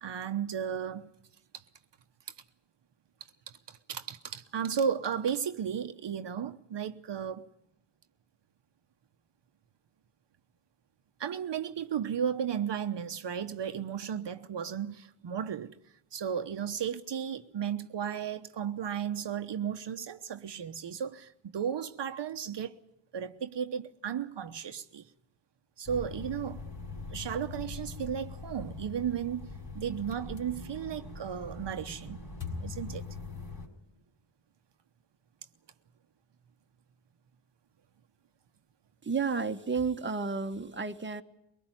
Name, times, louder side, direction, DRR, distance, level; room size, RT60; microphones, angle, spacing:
voice 1, 0.0-1.1 1.5-1.6 3.2-7.5 11.2-15.8 16.1-22.8 23.1-25.1 25.8-26.6 27.1-29.4 29.7-32.2 32.6-33.0, right 8 dB, 60° right, 1.1 m, -34 dB
sound 1, 25.9-33.7, left 3 dB, 50° left, 5.0 m, -42 dB
voice 2, 39.0-41.2, right 5 dB, 25° right, 1.4 m, -31 dB
23.0 x 19.5 x 9.1 m
cardioid pair, 80°, 49 cm